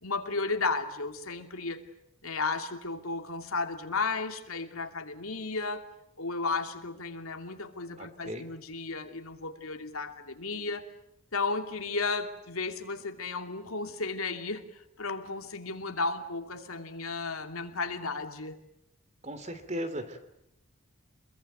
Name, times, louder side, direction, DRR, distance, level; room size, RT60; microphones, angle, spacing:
voice 1, 0.0-1.8 2.2-5.9 6.2-10.8 11.3-18.6, left 3 dB, 90° left, 2.8 m, -34 dB
voice 2, 8.0-8.4 19.2-20.2, equal, 30° right, 3.0 m, -37 dB
28.0 x 22.5 x 9.2 m
head